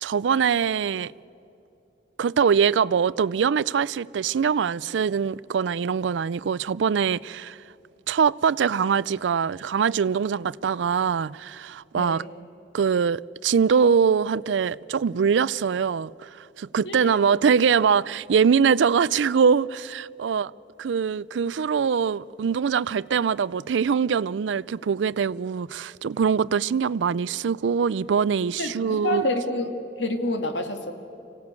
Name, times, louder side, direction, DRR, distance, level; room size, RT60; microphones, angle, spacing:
voice 1, 0.0-1.1 2.2-7.6 8.1-12.2 12.7-20.5 20.8-29.3, right 6 dB, 85° right, 0.4 m, -23 dB
voice 2, 11.9-12.5 16.8-17.2 26.4-26.5 28.6-30.9, left 2 dB, 85° left, 2.0 m, -29 dB
25.0 x 17.0 x 8.2 m
head